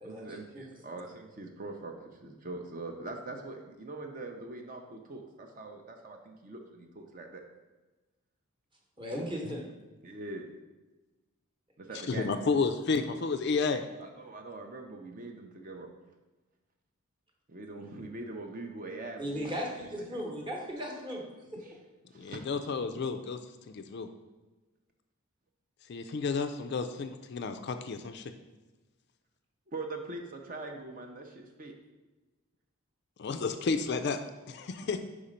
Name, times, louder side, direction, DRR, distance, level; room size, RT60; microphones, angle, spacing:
voice 1, 0.0-7.4 9.3-9.4 10.0-10.5 11.8-12.5 14.0-15.9 17.5-20.2 21.5-21.8 22.1-22.4 23.0-23.2 29.7-31.7 34.8-34.9, right 2 dB, 35° right, 3 dB, 0.5 m, -43 dB
voice 2, 9.0-9.6 19.2-21.2 21.5-21.7, equal, 20° right, 0 dB, 0.9 m, -36 dB
voice 3, 12.1-13.8 22.1-23.4 23.7-24.1 25.9-28.3 33.2-34.2 34.5-35.0, left 4 dB, 50° left, 8 dB, 0.3 m, -31 dB
4.9 x 4.2 x 5.1 m, 1.2 s
head